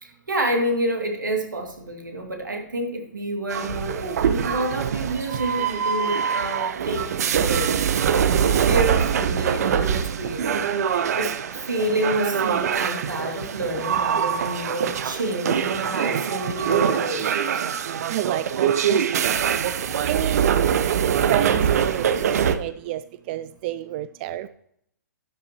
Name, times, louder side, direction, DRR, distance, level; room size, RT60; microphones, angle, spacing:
voice 1, 0.0-11.3 11.7-17.6, right 1 dB, 80° right, 3 dB, 2.4 m, -29 dB
sound 1, 3.5-22.5, right 8 dB, 55° right, 0.8 m, -23 dB
voice 2, 18.1-19.0 20.1-20.5 20.8-21.0 21.3-23.0 23.3-24.5, right 14 dB, 35° right, 14 dB, 0.3 m, -29 dB
12.0 x 9.6 x 2.9 m, 0.72 s
figure-of-eight pair, 120°, 10 cm